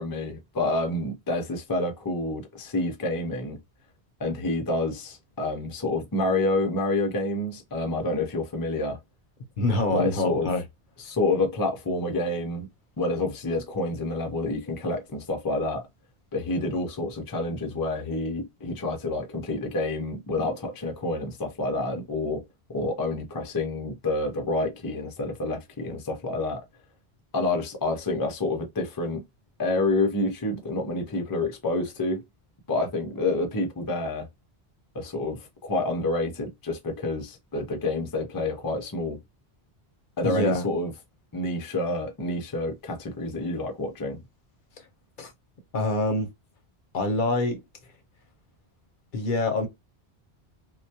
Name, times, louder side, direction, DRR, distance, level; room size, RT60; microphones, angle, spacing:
voice 1, 0.0-3.6 4.2-9.0 9.9-10.5 11.0-12.7 13.0-15.8 16.3-22.4 22.7-26.6 27.3-29.2 29.6-32.2 32.7-34.3 34.9-39.2 40.2-40.9 41.3-44.2, left 2 dB, 30° left, 0.4 m, -28 dB
voice 2, 9.6-10.6 40.2-40.6 45.2-45.3 45.7-46.3 46.9-47.6 49.1-49.7, left 2 dB, 60° left, 0.7 m, -25 dB
2.2 x 2.1 x 2.7 m
omnidirectional pair, 1.0 m